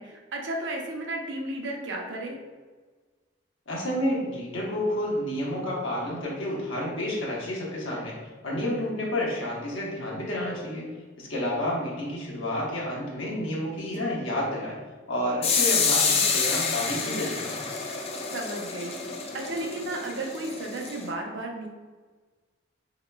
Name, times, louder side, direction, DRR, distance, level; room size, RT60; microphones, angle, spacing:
voice 1, 0.0-2.4 14.3-14.5 18.3-19.0 19.3-21.7, right 2 dB, 65° right, 1 dB, 0.6 m, -34 dB
voice 2, 3.7-14.8 15.1-17.6, left 1 dB, 85° left, -4 dB, 1.0 m, -30 dB
sound 1, 15.4-21.1, left 5 dB, 30° left, 0.3 m, -28 dB
3.8 x 2.9 x 2.2 m, 1.4 s
head